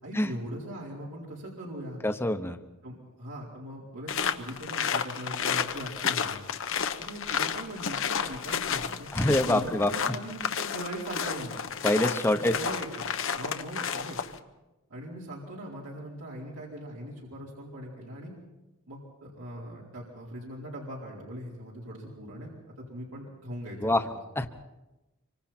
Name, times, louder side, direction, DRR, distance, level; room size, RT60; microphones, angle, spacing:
voice 1, 0.0-2.0 2.8-6.4 7.0-11.6 12.3-13.0 13.3-14.2 14.9-18.3 18.9-22.5 22.8-23.9, right 1 dB, 85° right, -5 dB, 4.4 m, -40 dB
voice 2, 2.0-2.6 9.1-9.9 11.8-12.5 23.8-24.0 24.4-24.5, left 1 dB, 10° left, 7 dB, 1.0 m, -25 dB
sound 1, 4.1-14.4, left 7 dB, 60° left, 1.0 m, -31 dB
26.0 x 25.0 x 4.4 m, 1.0 s
head